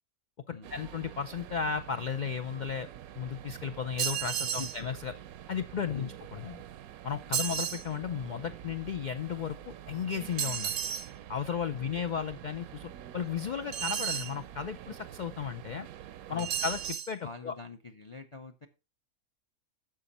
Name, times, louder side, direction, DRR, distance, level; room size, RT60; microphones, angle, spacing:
voice 1, 0.5-2.9 3.1-5.1 5.5-6.6 7.0-10.8 11.3-15.9 16.3-17.5, left 7 dB, 90° left, 9 dB, 0.4 m, -35 dB
sound 1, 0.6-17.0, right 11 dB, 85° right, 1.1 m, -47 dB
sound 2, 4.0-4.8 7.3-7.9 10.4-11.1 13.7-14.4 16.4-17.1, right 9 dB, 60° right, 0.7 m, -32 dB
voice 2, 4.4-4.9 5.9-6.2 7.3-7.6 11.7-11.9 16.3-16.5 17.2-18.7, left 4 dB, 35° left, 9 dB, 0.5 m, -46 dB
12.5 x 5.1 x 4.1 m, 0.30 s
omnidirectional pair, 1.5 m